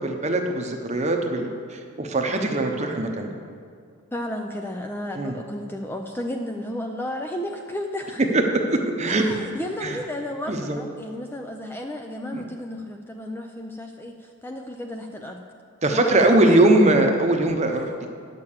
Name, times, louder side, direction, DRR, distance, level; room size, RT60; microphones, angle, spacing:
voice 1, 0.0-3.3 5.1-5.3 8.2-9.2 9.8-10.0 10.5-10.8 12.3-12.4 15.8-18.1, right 2 dB, 30° right, 3 dB, 0.9 m, -21 dB
voice 2, 4.1-8.3 9.1-15.4 15.9-16.5 17.7-17.8, left 1 dB, 10° left, 3 dB, 0.4 m, -33 dB
10.5 x 6.7 x 7.2 m, 2.1 s
head